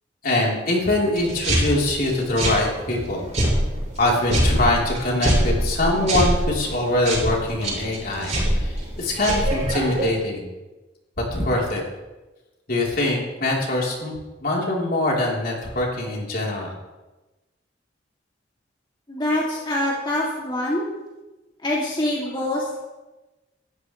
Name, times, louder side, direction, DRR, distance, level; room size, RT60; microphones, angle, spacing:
voice 1, 0.2-3.3 4.0-10.5 11.2-11.8 12.7-14.1 14.4-16.7, left 1 dB, 55° left, -3 dB, 3.6 m, -23 dB
sound 1, 1.1-10.0, right 1 dB, 40° right, 5.9 m, -25 dB
voice 2, 19.1-20.9 21.6-22.8, left 1 dB, 25° left, -5 dB, 2.5 m, -25 dB
19.0 x 13.5 x 3.2 m, 1.1 s
head